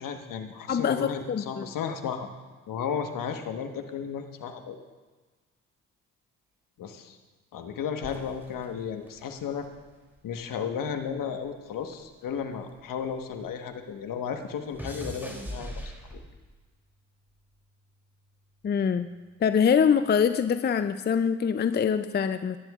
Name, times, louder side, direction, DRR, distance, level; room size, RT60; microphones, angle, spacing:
voice 1, 0.0-2.3 2.7-4.8 6.8-7.2 7.5-9.7 10.2-16.2, left 7 dB, 60° left, 6 dB, 1.3 m, -34 dB
voice 2, 0.7-1.7 18.6-19.1 19.4-22.6, left 7 dB, 30° left, 11 dB, 0.5 m, -24 dB
sound 1, 8.0-10.5 10.8-13.5 13.7-16.5 17.3-17.6, equal, 5° right, 3.0 m, -42 dB
19.5 x 10.5 x 2.4 m, 1.3 s
hypercardioid pair, 50°, 37 cm